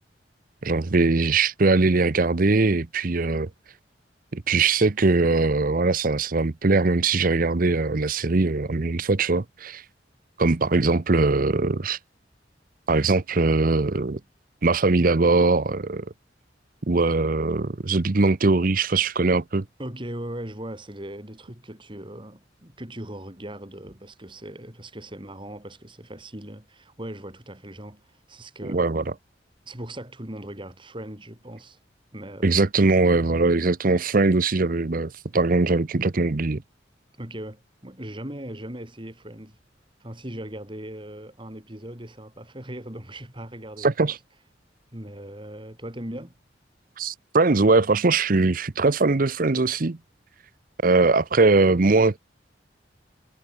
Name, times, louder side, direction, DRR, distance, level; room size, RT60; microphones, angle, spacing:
voice 1, 0.6-3.5 4.3-9.8 10.4-12.0 12.9-14.2 14.6-16.1 16.9-19.6 28.7-29.0 32.4-36.6 43.8-44.2 47.0-50.0 50.8-52.2, right 3 dB, 50° right, 0.8 m, -21 dB
voice 2, 19.8-28.9 29.7-31.8 32.1-32.6 37.2-39.6 40.0-44.1 44.9-46.3, right 1 dB, 25° right, 4.1 m, -39 dB
head